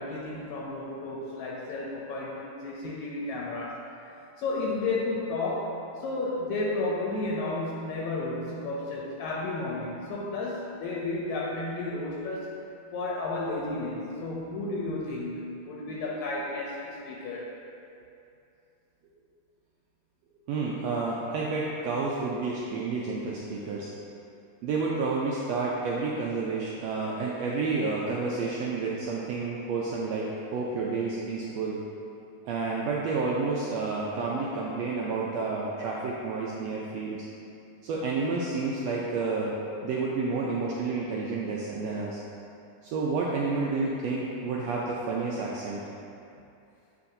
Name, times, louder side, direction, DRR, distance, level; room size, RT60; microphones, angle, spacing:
voice 1, 0.0-3.8 4.4-12.5 12.9-17.5, left 2 dB, 80° left, -3 dB, 1.8 m, -32 dB
voice 2, 20.5-23.9 24.6-31.8 32.4-37.2 37.8-39.5 39.8-42.2 42.8-45.8, right 4 dB, 85° right, -4 dB, 1.4 m, -30 dB
7.9 x 5.7 x 2.6 m, 2.7 s
omnidirectional pair, 3.6 m